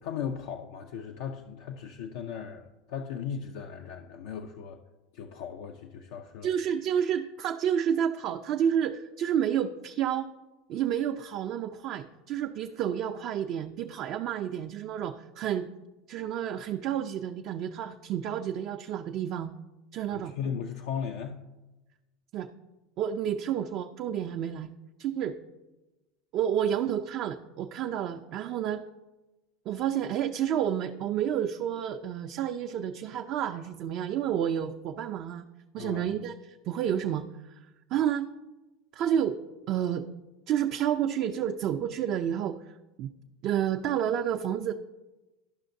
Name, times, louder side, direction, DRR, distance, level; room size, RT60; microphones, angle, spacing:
voice 1, 0.0-4.8 5.1-6.5 20.1-21.4 35.8-36.1, left 7 dB, 70° left, 4 dB, 0.4 m, -37 dB
voice 2, 6.4-10.3 10.7-15.7 16.1-19.5 19.9-20.3 22.3-22.5 23.0-24.7 25.0-25.4 26.3-28.8 29.7-35.4 35.7-37.2 37.5-37.6 37.9-38.3 38.9-39.4 39.7-40.1 40.5-43.1 43.4-44.7, right 9 dB, 50° right, 5 dB, 0.4 m, -30 dB
12.0 x 5.6 x 2.6 m, 1.1 s
hypercardioid pair, 95°, 0 cm